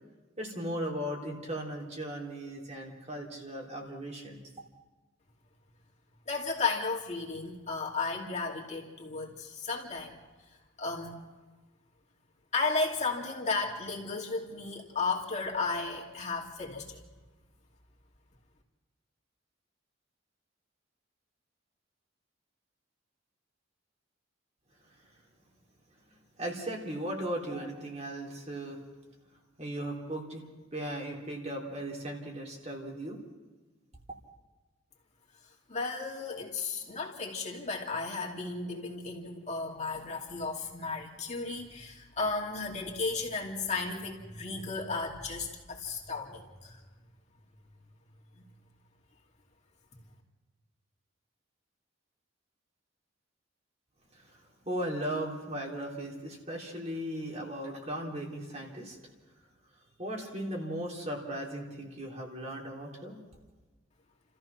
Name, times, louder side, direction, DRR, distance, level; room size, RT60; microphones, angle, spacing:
voice 1, 0.4-4.4 26.4-28.8 29.6-30.4 30.7-33.2 54.1-54.4 54.7-59.0 60.0-63.2, right 1 dB, 35° right, -1 dB, 3.6 m, -37 dB
voice 2, 6.3-10.2 10.8-11.2 12.5-17.0 35.7-46.8 48.4-48.5, left 4 dB, 35° left, -1 dB, 2.7 m, -34 dB
30.0 x 14.5 x 6.0 m, 1.3 s
head